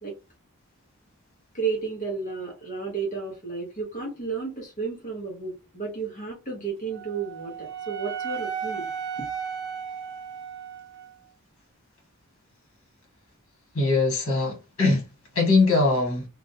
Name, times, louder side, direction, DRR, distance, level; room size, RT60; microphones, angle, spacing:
voice 1, 1.5-8.9 9.2-9.3, right 5 dB, 35° left, 0.9 m, -32 dB
Wind instrument woodwind instrument, 6.9-11.1, right 7 dB, 55° right, 0.8 m, -34 dB
voice 2, 13.7-15.0 15.3-16.3, left 3 dB, 75° left, 1.3 m, -21 dB
2.5 x 2.1 x 2.7 m
head